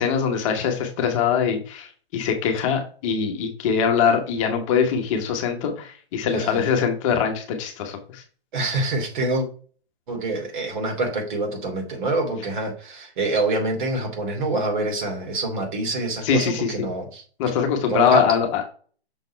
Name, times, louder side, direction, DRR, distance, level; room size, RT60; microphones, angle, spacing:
voice 1, 0.0-8.2 16.2-16.7 17.4-18.6, left 7 dB, 30° left, 4 dB, 1.1 m, -22 dB
voice 2, 6.3-6.7 8.5-9.5 10.1-17.2 17.8-18.2, right 2 dB, 50° right, 2 dB, 2.9 m, -26 dB
6.2 x 4.0 x 4.4 m, 0.42 s
hypercardioid pair, 140°, 31 cm